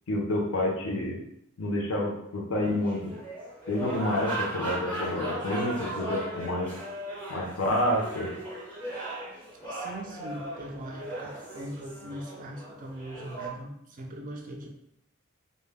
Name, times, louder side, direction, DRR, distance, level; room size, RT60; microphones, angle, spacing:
voice 1, 0.1-1.2 1.6-3.0 3.7-6.7 7.3-8.3, left 1 dB, 70° left, -1 dB, 0.6 m, -28 dB
sound 1, 2.6-13.5, right 1 dB, 5° left, 0.6 m, -37 dB
voice 2, 9.7-14.7, right 1 dB, 35° right, 2 dB, 0.4 m, -40 dB
2.1 x 2.0 x 3.4 m, 0.77 s
head